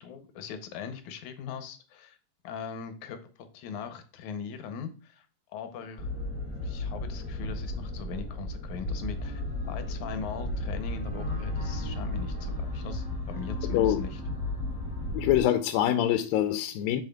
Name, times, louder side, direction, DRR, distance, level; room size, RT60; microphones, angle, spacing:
voice 1, 0.0-2.2 2.4-5.3 5.5-6.1 6.6-14.2, left 6 dB, 70° left, 2.0 m, -40 dB
sound 1, 6.0-15.4, left 1 dB, 10° left, 1.4 m, -34 dB
voice 2, 13.6-14.0 15.1-17.0, left 12 dB, 90° left, 2.3 m, -25 dB
7.6 x 7.0 x 2.3 m
omnidirectional pair, 4.0 m